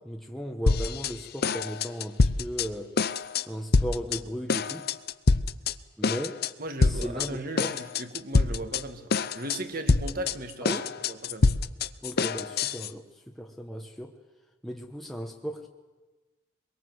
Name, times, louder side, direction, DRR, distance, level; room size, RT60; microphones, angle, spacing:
voice 1, 0.0-2.9 3.5-4.9 6.0-6.5 6.8-7.8 10.6-10.9 12.0-14.1 14.6-15.7, equal, ahead, 1 dB, 1.2 m, -36 dB
sound 1, 0.7-1.1 1.4-2.7 3.0-3.4 3.7-4.2 4.5-5.7 6.0-6.5 6.8-7.3 7.6-8.8 9.1-9.6 9.9-12.9, left 3 dB, 50° left, 0.7 m, -25 dB
voice 2, 6.6-11.6, right 1 dB, 50° right, 7 dB, 2.0 m, -37 dB
23.0 x 22.5 x 7.9 m, 1.2 s
head